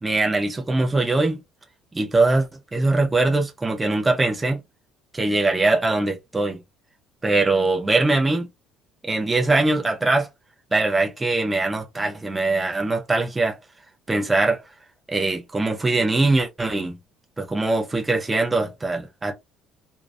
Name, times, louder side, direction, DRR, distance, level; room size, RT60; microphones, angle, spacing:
voice 1, 0.0-1.4 1.9-2.5 2.7-4.6 5.1-6.6 7.2-8.5 9.0-10.3 10.7-13.6 14.1-14.6 15.1-17.0 17.4-19.3, right 2 dB, 10° right, 0.4 m, -22 dB
2.4 x 2.1 x 2.4 m
cardioid pair, 175°, 0 cm